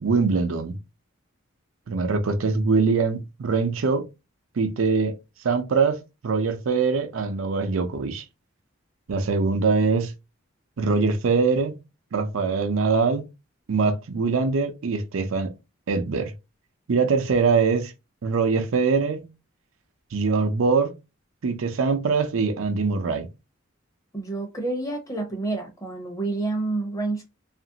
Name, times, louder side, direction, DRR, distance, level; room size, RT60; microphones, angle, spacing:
voice 1, 0.0-0.8 1.9-4.1 4.6-5.1 5.4-8.2 9.1-10.1 10.8-11.8 12.1-13.3 13.7-15.5 15.9-16.3 16.9-17.9 18.2-19.3 20.1-21.0 21.4-23.3, right 4 dB, 80° right, 0.5 m, -23 dB
voice 2, 24.1-27.2, right 2 dB, 15° left, 0.7 m, -28 dB
2.9 x 2.5 x 2.7 m
head